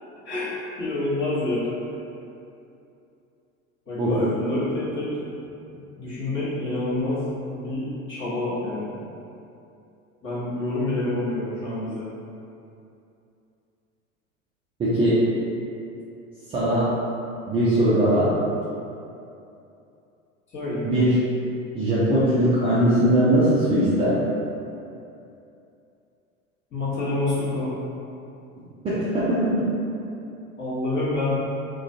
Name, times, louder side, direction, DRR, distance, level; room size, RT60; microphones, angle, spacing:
voice 1, 0.2-1.7 3.9-5.1 6.0-9.0 10.2-12.1 20.5-20.9 26.7-27.7 30.6-31.4, left 2 dB, 30° left, -10 dB, 1.0 m, -27 dB
voice 2, 14.8-15.2 16.5-16.9 17.5-18.3 20.8-21.2 21.7-24.2 28.8-29.7, right 1 dB, 15° right, -11 dB, 0.4 m, -20 dB
2.4 x 2.2 x 2.6 m, 2.7 s
hypercardioid pair, 80°, 42 cm